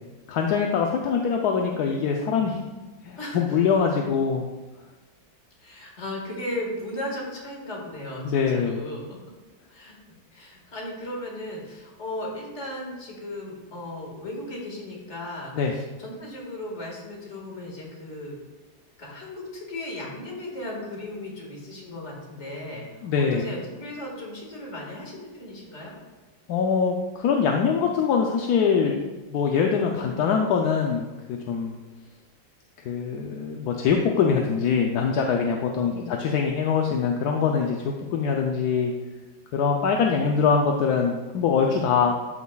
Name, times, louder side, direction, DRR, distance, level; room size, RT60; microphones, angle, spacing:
voice 1, 0.3-2.6 3.0-4.5 8.2-8.8 15.5-15.7 23.0-23.5 26.5-29.0 29.3-31.8 32.8-38.9 39.5-42.1, left 6 dB, 70° left, 2 dB, 1.0 m, -23 dB
voice 2, 3.2-3.6 5.6-9.2 9.7-10.0 10.3-18.4 19.0-25.9 35.8-36.1, left 1 dB, 35° left, -2 dB, 2.1 m, -36 dB
12.5 x 6.2 x 2.3 m, 1.2 s
omnidirectional pair, 2.1 m